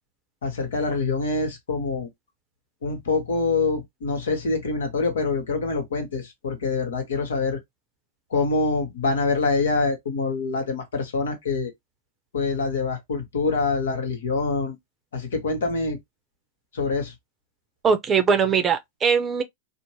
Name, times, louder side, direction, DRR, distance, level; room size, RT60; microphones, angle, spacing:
voice 1, 0.4-2.1 2.8-7.6 8.3-11.7 12.3-14.8 15.1-16.0 16.7-17.1, left 4 dB, 75° left, 1.0 m, -25 dB
voice 2, 17.8-19.4, right 6 dB, 25° right, 0.6 m, -21 dB
2.6 x 2.1 x 2.9 m
hypercardioid pair, 100°, 0 cm